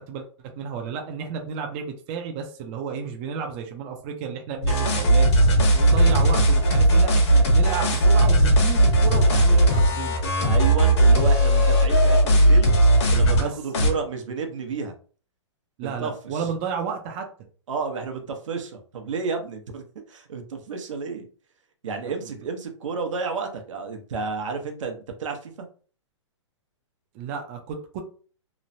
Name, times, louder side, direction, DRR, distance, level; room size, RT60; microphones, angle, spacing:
voice 1, 0.0-5.3 5.7-10.2 13.3-13.5 15.8-17.3 22.2-22.3 27.1-28.0, right 6 dB, 25° right, 3 dB, 0.4 m, -32 dB
sound 1, 4.6-13.4 13.7-13.9, right 1 dB, 60° left, 1.1 m, -17 dB
voice 2, 10.4-12.7 13.1-14.9 15.8-16.4 17.7-21.3 21.8-25.7, right 5 dB, 85° right, 4 dB, 0.8 m, -31 dB
3.0 x 2.0 x 2.6 m, 0.41 s
hypercardioid pair, 160°, 16 cm